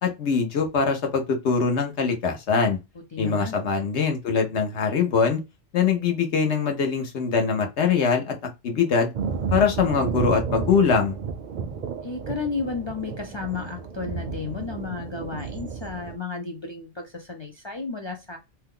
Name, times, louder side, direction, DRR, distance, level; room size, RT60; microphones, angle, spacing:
voice 1, 0.0-2.8 3.2-5.4 5.7-8.3 8.6-9.1 9.5-11.2, left 5 dB, 75° left, 1.1 m, -22 dB
voice 2, 3.1-3.6 12.0-18.4, left 4 dB, 50° left, 0.3 m, -33 dB
Thunder, 9.1-16.2, right 6 dB, 55° right, 0.5 m, -32 dB
2.8 x 2.2 x 3.6 m
omnidirectional pair, 1.2 m